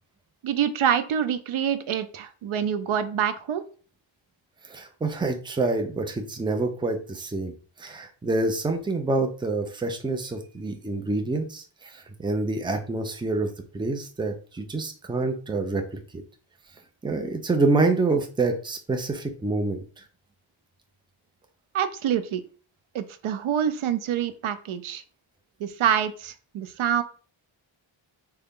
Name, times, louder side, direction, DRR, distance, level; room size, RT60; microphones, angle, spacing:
voice 1, 0.4-3.6 21.7-22.4 22.9-25.0 25.6-27.0, right 9 dB, 75° right, 11 dB, 0.5 m, -26 dB
voice 2, 4.7-7.5 7.8-15.8 16.1-16.2 17.0-19.8, right 3 dB, 10° right, 5 dB, 0.5 m, -27 dB
3.8 x 2.3 x 3.6 m, 0.39 s
wide cardioid pair, 105°, 49 cm